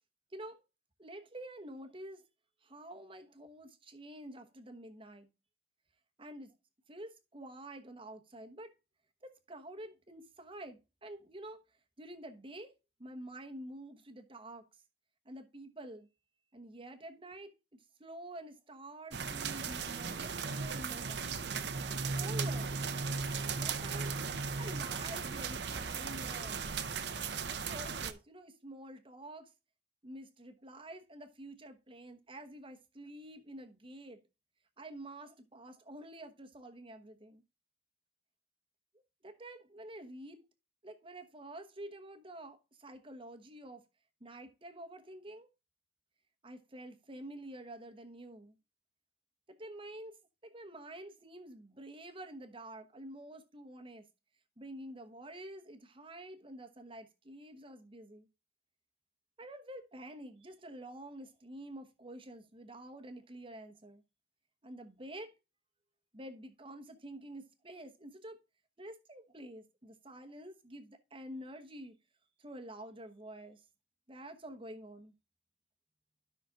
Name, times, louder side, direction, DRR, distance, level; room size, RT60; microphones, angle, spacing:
voice 1, 0.3-0.6 1.0-2.2 2.6-5.3 6.2-6.5 6.9-8.7 9.2-11.6 12.0-12.7 13.0-14.6 15.2-16.1 16.5-21.3 22.1-22.7 23.4-24.1 24.6-26.6 27.6-29.5 30.0-34.2 34.8-37.4 39.2-40.4 40.8-43.8 44.2-45.5 46.4-48.5 49.6-50.1 50.4-54.1 54.6-58.3 59.4-64.0 64.6-65.3 66.1-68.4 68.8-71.9 72.4-73.6 74.1-75.1, right 1 dB, 30° right, 1.1 m, -48 dB
sound 1, 19.1-28.1, right 5 dB, 65° right, 0.7 m, -37 dB
13.0 x 5.8 x 2.4 m
head